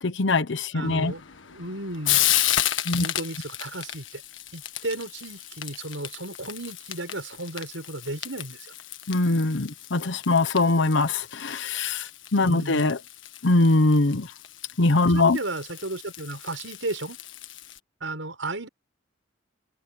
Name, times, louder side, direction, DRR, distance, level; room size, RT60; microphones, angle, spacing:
voice 1, 0.0-1.1 2.9-3.1 9.1-13.0 13.4-14.3 14.8-15.4, left 2 dB, 70° left, 0.9 m, -22 dB
voice 2, 0.7-1.2 1.5-2.2 3.0-4.2 4.5-8.7 12.4-12.9 15.1-17.2 18.0-18.7, right 2 dB, 85° right, 6.0 m, -34 dB
Frying (food), 0.8-17.8, left 12 dB, 85° left, 1.6 m, -33 dB
head